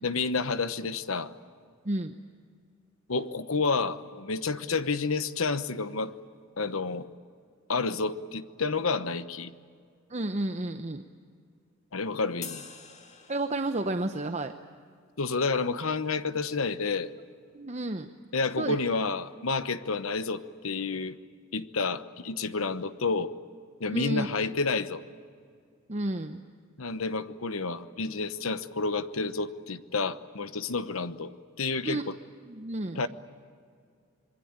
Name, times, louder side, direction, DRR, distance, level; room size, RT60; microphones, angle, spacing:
voice 1, 0.0-1.3 3.1-6.1 6.6-7.1 7.7-9.5 11.9-12.6 15.2-17.1 18.3-21.2 21.5-23.3 23.8-25.0 26.8-31.3 31.6-32.2 32.9-33.1, left 4 dB, 85° left, 12 dB, 1.1 m, -30 dB
voice 2, 1.8-2.1 10.1-11.0 13.3-14.6 17.5-18.1 18.6-18.8 23.9-24.3 25.9-26.4 31.8-32.0 32.5-33.0, right 2 dB, 35° right, 7 dB, 0.8 m, -31 dB
sound 1, 12.4-14.0, left 7 dB, 35° left, 1.9 m, -45 dB
26.0 x 22.0 x 8.8 m, 2.2 s
head